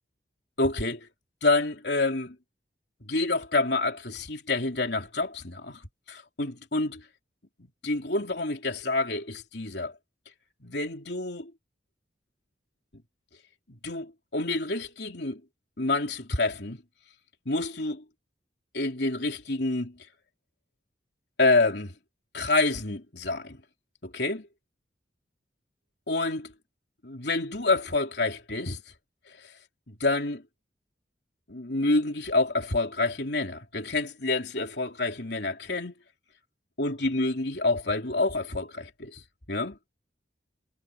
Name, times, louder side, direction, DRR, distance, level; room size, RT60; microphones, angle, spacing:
voice 1, 0.6-1.1 1.4-2.4 3.0-5.8 6.1-7.0 7.6-10.0 10.6-11.5 13.8-15.4 15.8-16.8 17.4-18.0 18.7-20.0 21.4-21.9 22.3-23.6 24.0-24.5 26.1-26.5 27.0-28.8 29.3-29.5 29.9-30.4 31.5-35.9 36.8-39.2 39.5-39.8, left 2 dB, 65° left, 3.3 m, -28 dB
head